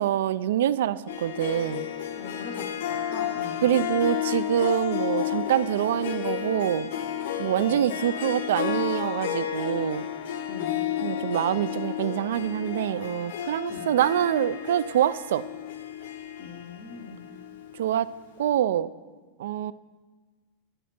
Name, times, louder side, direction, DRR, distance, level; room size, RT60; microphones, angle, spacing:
voice 1, 0.0-1.9 3.6-6.9 7.4-10.1 11.0-15.4 17.7-18.1 18.4-18.9 19.4-19.7, right 11 dB, 75° right, 16 dB, 0.3 m, -25 dB
Harp, 1.1-17.9, left 10 dB, 65° left, 0.7 m, -32 dB
voice 2, 2.2-3.6 7.6-7.8 10.5-10.7 13.7-13.9 16.4-17.2, left 4 dB, 25° left, 5 dB, 0.6 m, -41 dB
11.0 x 9.1 x 4.3 m, 1.4 s
supercardioid pair, 180°, 0 cm